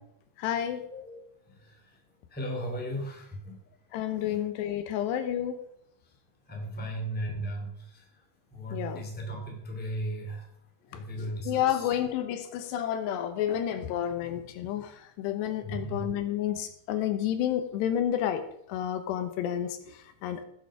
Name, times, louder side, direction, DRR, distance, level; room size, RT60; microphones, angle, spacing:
voice 1, 0.4-0.8 3.9-5.6 8.7-9.0 11.2-18.4 18.7-20.4, left 10 dB, 80° left, 9 dB, 3.0 m, -30 dB
voice 2, 2.3-3.6 4.1-4.4 6.5-8.0 8.5-10.5 10.9-11.9 15.6-16.1, right 1 dB, 5° left, 0 dB, 1.8 m, -36 dB
18.0 x 7.4 x 4.9 m, 0.73 s
omnidirectional pair, 5.0 m